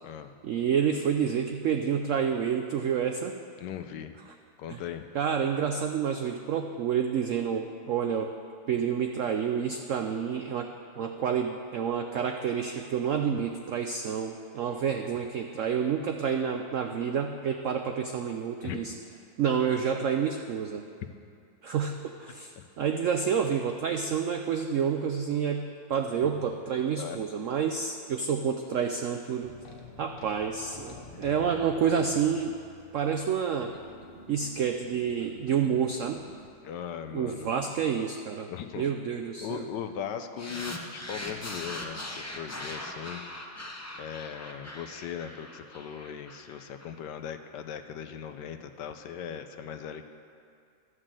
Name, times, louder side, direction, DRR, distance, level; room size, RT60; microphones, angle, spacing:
voice 1, 0.4-3.3 4.7-4.8 5.1-8.3 8.7-10.7 11.0-18.9 19.4-20.8 21.6-29.5 30.0-32.6 32.9-33.7 34.3-36.2 37.1-38.5 38.8-39.7, right 7 dB, 90° right, 5 dB, 0.6 m, -29 dB
voice 2, 3.6-4.2 4.6-5.1 18.6-18.8 21.0-21.1 22.6-22.7 26.2-26.3 27.0-27.2 31.1-31.3 36.6-37.9 38.5-38.9 39.4-43.2 44.0-50.1, left 8 dB, 75° left, 8 dB, 1.2 m, -39 dB
sound 1, 29.4-36.5, left 1 dB, 40° left, 0.8 m, -49 dB
sound 2, 40.4-46.9, left 1 dB, 20° left, 0.4 m, -40 dB
12.5 x 6.4 x 7.5 m, 2.4 s
omnidirectional pair, 2.0 m